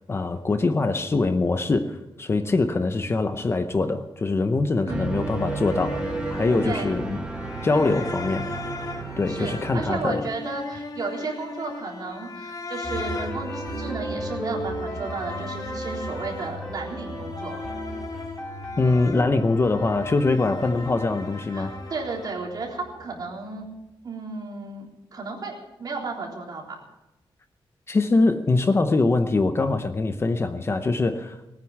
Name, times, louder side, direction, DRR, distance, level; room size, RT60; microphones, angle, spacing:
voice 1, 0.1-6.0 6.3-7.2 7.6-8.5 9.2-10.2 18.8-21.7 27.9-31.4, left 3 dB, 30° left, 9 dB, 0.7 m, -23 dB
voice 2, 4.8-5.2 6.6-6.9 9.3-17.6 21.5-23.7 24.0-26.8, right 3 dB, 45° right, -1 dB, 3.7 m, -33 dB
sound 1, 4.9-10.0, right 3 dB, 10° right, 1.3 m, -32 dB
sound 2, 5.1-22.3, left 3 dB, 45° left, 2.1 m, -38 dB
sound 3, 12.8-23.1, right 1 dB, 10° left, 2.7 m, -36 dB
19.0 x 9.5 x 7.5 m, 0.96 s
wide cardioid pair, 175°, 9 cm